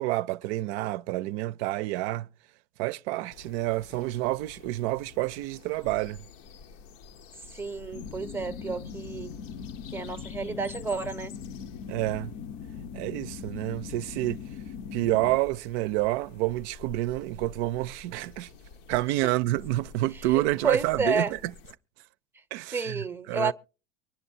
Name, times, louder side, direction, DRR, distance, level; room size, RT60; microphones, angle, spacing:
voice 1, 0.0-2.3 2.8-6.2 11.9-12.3 12.9-14.4 14.9-18.5 18.9-21.4 22.5-23.5, right 17 dB, 65° right, 0.5 m, -28 dB
sound 1, 3.3-21.7, left 5 dB, 75° left, 1.0 m, -50 dB
voice 2, 7.5-9.3 9.9-11.3 20.6-21.3 22.7-23.5, right 4 dB, 5° right, 0.7 m, -30 dB
sound 2, 7.9-15.4, left 6 dB, 45° left, 0.8 m, -40 dB
24.0 x 10.0 x 2.7 m
supercardioid pair, 105°, 37 cm